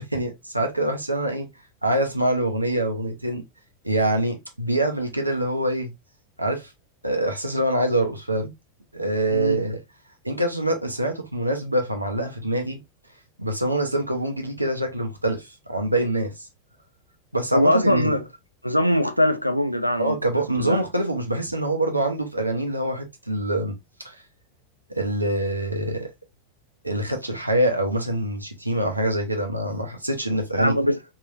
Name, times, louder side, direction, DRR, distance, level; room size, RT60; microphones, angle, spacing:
voice 1, 0.0-1.5 1.8-3.4 3.8-5.9 6.4-6.7 7.0-8.5 8.9-9.8 10.2-12.8 13.4-16.5 17.3-18.1 20.0-23.7 24.0-24.2 24.9-26.1 26.8-30.7, right 1 dB, 85° right, 0.7 m, -25 dB
voice 2, 9.3-9.6 17.5-18.2 18.6-20.2 20.6-20.8 30.6-31.0, left 1 dB, 90° left, 0.4 m, -21 dB
3.2 x 2.7 x 2.5 m
figure-of-eight pair, 90°, 0 cm